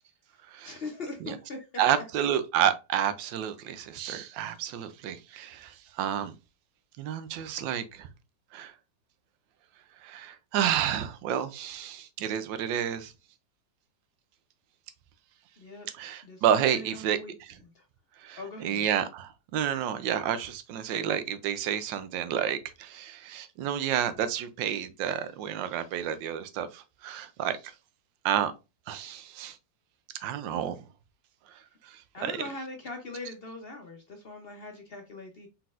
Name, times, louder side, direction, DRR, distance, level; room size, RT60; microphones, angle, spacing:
voice 1, 0.6-1.7 15.6-15.9 16.2-17.3 17.6-17.8 18.4-18.9 32.1-35.5, left 2 dB, 55° left, 0.7 m, -41 dB
voice 2, 1.8-6.3 7.0-8.1 8.5-8.7 10.0-13.1 16.0-17.2 18.2-18.4 18.6-27.6 28.2-28.5 28.9-29.6 30.2-30.8 32.2-32.3, right 9 dB, 85° right, 1.3 m, -30 dB
4.2 x 3.9 x 2.4 m
omnidirectional pair, 2.0 m